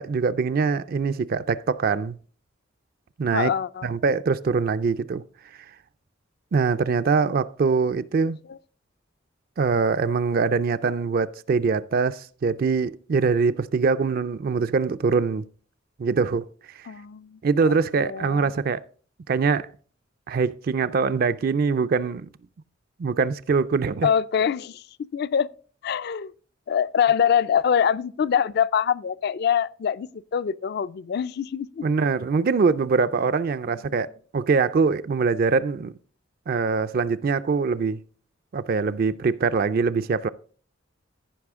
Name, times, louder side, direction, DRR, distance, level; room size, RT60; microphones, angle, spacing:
voice 1, 0.0-2.2 3.2-3.5 3.8-5.2 6.5-8.4 9.6-15.5 16.0-16.5 17.4-18.8 19.3-19.7 20.3-22.3 23.0-24.1 31.8-34.1 34.3-35.9 36.5-38.0 38.5-40.3, right 5 dB, 50° right, 0.4 m, -23 dB
voice 2, 3.3-3.9 16.9-17.4 17.7-18.5 24.0-24.8 25.1-25.5 25.8-26.3 26.7-31.9 33.9-34.0, left 8 dB, 55° left, 0.4 m, -24 dB
14.5 x 5.5 x 3.5 m
head